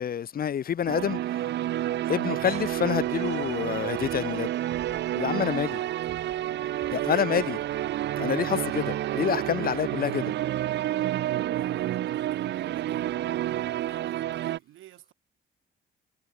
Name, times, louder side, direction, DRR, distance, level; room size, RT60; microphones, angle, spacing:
voice 1, 0.0-1.5 2.1-4.5 5.1-5.8 6.9-7.6 8.2-10.3, left 8 dB, 50° left, 0.9 m, -28 dB
sound 1, 0.9-14.6, right 13 dB, 60° right, 0.5 m, -29 dB
sound 2, 2.4-8.2, right 6 dB, 35° right, 1.1 m, -52 dB
voice 2, 11.5-15.1, right 14 dB, 80° right, 1.6 m, -49 dB
cardioid pair, 90°, 20 cm